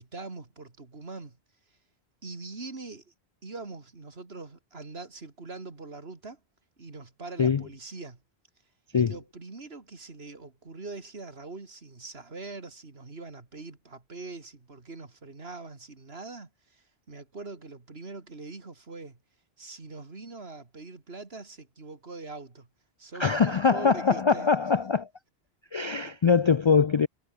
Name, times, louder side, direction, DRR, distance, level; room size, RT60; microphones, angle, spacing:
voice 1, 0.0-1.4 2.2-3.1 3.4-6.4 6.8-8.2 8.9-19.2 19.6-22.7 23.0-24.5, right 3 dB, 80° right, 2.9 m, -42 dB
voice 2, 23.2-25.1 25.7-27.1, left 5 dB, 50° left, 0.3 m, -23 dB
omnidirectional pair, 1.0 m